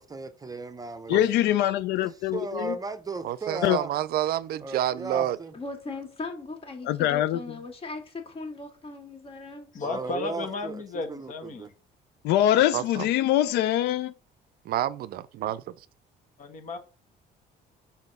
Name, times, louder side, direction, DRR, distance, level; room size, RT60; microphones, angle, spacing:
voice 1, 0.0-1.2 2.0-3.9 4.6-5.5 9.8-11.7, right 3 dB, 20° right, 0.7 m, -36 dB
voice 2, 1.1-2.8 3.6-3.8 6.9-7.4 12.2-14.1, left 12 dB, 80° left, 0.4 m, -23 dB
voice 3, 3.2-5.4 12.7-13.1 14.7-15.7, right 12 dB, 65° right, 0.5 m, -29 dB
voice 4, 5.5-9.7, left 3 dB, 35° left, 2.1 m, -38 dB
voice 5, 9.7-11.7 16.4-16.8, left 3 dB, 50° left, 1.5 m, -34 dB
6.1 x 4.3 x 5.4 m
cardioid pair, 110°, 17 cm